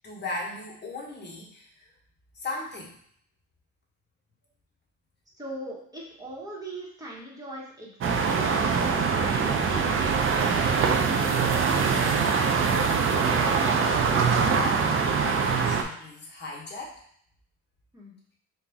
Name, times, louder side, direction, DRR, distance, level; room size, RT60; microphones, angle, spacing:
voice 1, 0.0-1.9 2.3-2.9 13.8-17.0, left 2 dB, 35° left, -2 dB, 1.3 m, -38 dB
voice 2, 5.4-8.9 9.1-10.6 17.9-18.2, right 1 dB, 10° right, -4 dB, 1.4 m, -40 dB
sound 1, 8.0-15.8, right 5 dB, 45° right, 0.6 m, -23 dB
4.0 x 2.6 x 3.5 m, 0.66 s
cardioid pair, 90°, 30 cm